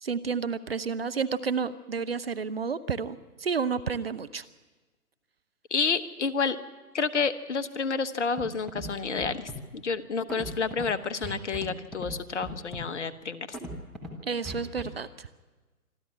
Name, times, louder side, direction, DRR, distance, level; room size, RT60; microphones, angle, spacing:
voice 1, 0.0-4.4 14.2-15.3, right 5 dB, 40° right, 13 dB, 0.7 m, -31 dB
voice 2, 5.7-6.6 6.9-13.6, left 5 dB, 50° left, 13 dB, 1.2 m, -29 dB
Scratching (performance technique), 8.4-8.5 8.7-8.9 9.2-9.6 10.3-10.9 11.2-11.7 11.9-12.2 12.4-12.8 13.5-14.1 14.5-14.8, equal, ahead, 1.1 m, -37 dB
26.0 x 12.5 x 9.7 m, 1.2 s
figure-of-eight pair, 140°, 47 cm